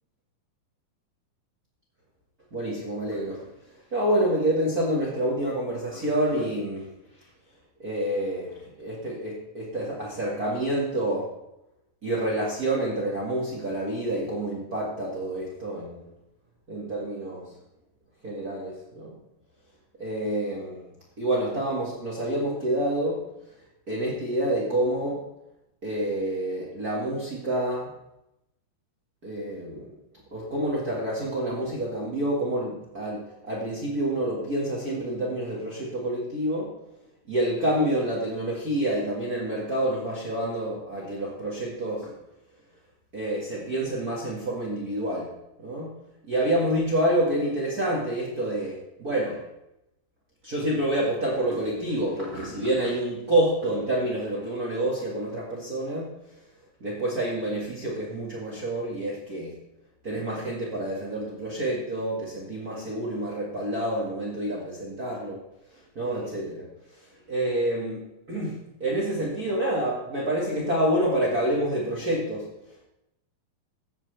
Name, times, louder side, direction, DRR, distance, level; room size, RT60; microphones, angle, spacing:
voice 1, 2.5-3.5 3.9-6.8 7.8-8.5 8.8-11.3 12.0-16.0 16.7-17.5 18.2-19.1 20.0-20.8 21.2-23.2 23.9-25.2 25.8-27.9 29.2-29.9 30.3-36.7 37.3-42.1 43.1-45.3 45.6-45.9 46.2-49.4 50.4-56.1 56.8-59.5 60.0-65.4 65.9-66.6 67.3-72.5, right 1 dB, 35° right, -4 dB, 1.6 m, -28 dB
14.5 x 9.0 x 3.4 m, 0.87 s
omnidirectional pair, 4.3 m